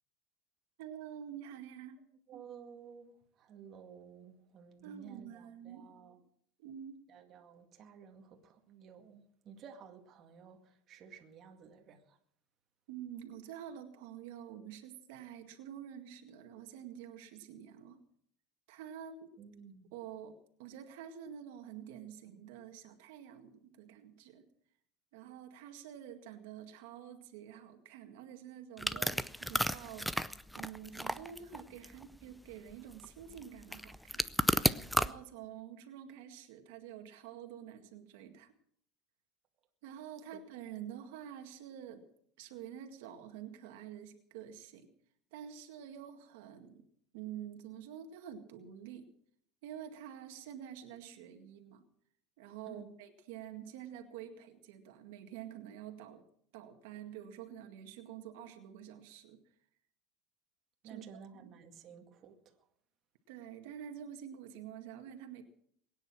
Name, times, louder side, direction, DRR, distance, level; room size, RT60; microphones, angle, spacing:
voice 1, 0.8-2.0 4.8-5.9 6.6-7.0 12.9-18.0 18.7-19.3 19.9-24.5 25.1-30.2 30.6-34.3 34.9-38.5 39.8-42.1 42.4-44.9 45.3-46.8 47.1-49.1 49.6-51.8 52.4-56.3 56.5-59.4 60.8-61.0 61.4-61.5 63.3-65.4, right 9 dB, 75° right, 2.0 m, -48 dB
voice 2, 2.3-6.2 7.1-12.2 19.4-19.9 52.7-52.9 60.8-62.5, right 6 dB, 40° right, 2.1 m, -54 dB
sound 1, 28.8-35.1, equal, ahead, 0.5 m, -33 dB
22.0 x 9.7 x 6.2 m
supercardioid pair, 140°, 0 cm